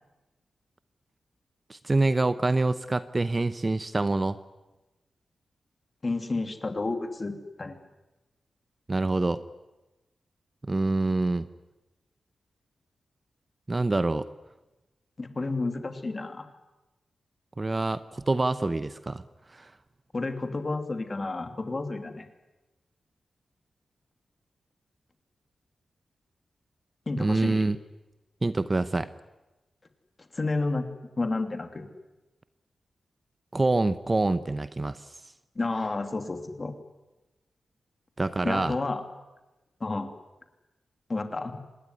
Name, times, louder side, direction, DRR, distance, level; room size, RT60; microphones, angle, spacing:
voice 1, 1.7-4.4 8.9-9.4 10.6-11.4 13.7-14.3 17.6-19.2 19.5-19.7 27.2-27.8 28.4-29.1 33.5-35.1 38.2-38.8, right 2 dB, 25° right, 14 dB, 0.8 m, -26 dB
voice 2, 6.0-7.8 15.2-16.5 20.1-22.3 27.1-27.6 30.3-30.9 31.2-31.9 35.5-36.7 38.4-39.0 39.8-40.1 41.1-41.6, left 3 dB, 30° left, 8 dB, 2.9 m, -31 dB
26.0 x 19.5 x 9.8 m, 1.0 s
wide cardioid pair, 110°, 0 cm